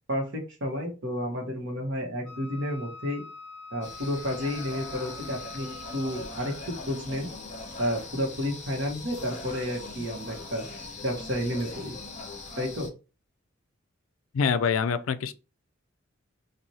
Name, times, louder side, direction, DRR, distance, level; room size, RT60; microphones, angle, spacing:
voice 1, 0.1-3.2 3.7-5.7 5.9-7.3 7.8-10.7 11.0-12.0 12.6-12.9, equal, 65° right, 1.3 m, -31 dB
Wind instrument woodwind instrument, 2.2-6.5, left 4 dB, 5° left, 1.3 m, -45 dB
sound 1, 3.8-12.9, left 3 dB, 35° left, 1.1 m, -41 dB
voice 2, 14.3-15.3, left 6 dB, 85° left, 0.4 m, -25 dB
4.0 x 2.6 x 3.1 m
head